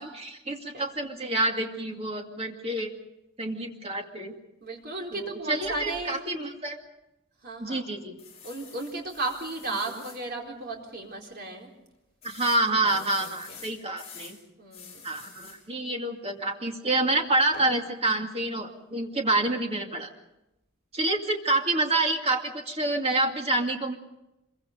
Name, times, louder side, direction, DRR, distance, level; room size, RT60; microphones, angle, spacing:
voice 1, 0.0-2.9 3.4-4.3 5.1-6.8 7.6-8.2 12.2-14.4 15.0-20.1 20.9-24.0, right 2 dB, 30° right, 3 dB, 2.3 m, -28 dB
voice 2, 4.6-6.2 7.4-7.9 8.4-11.7 12.8-13.6 14.6-15.1, right 2 dB, 50° right, 0 dB, 4.2 m, -35 dB
sound 1, 8.2-10.2 10.7-10.8 11.1-11.2 12.2-14.4 14.7-15.6 17.5-17.8, left 6 dB, 30° left, 8.0 m, -47 dB
26.0 x 23.0 x 5.2 m, 0.94 s
head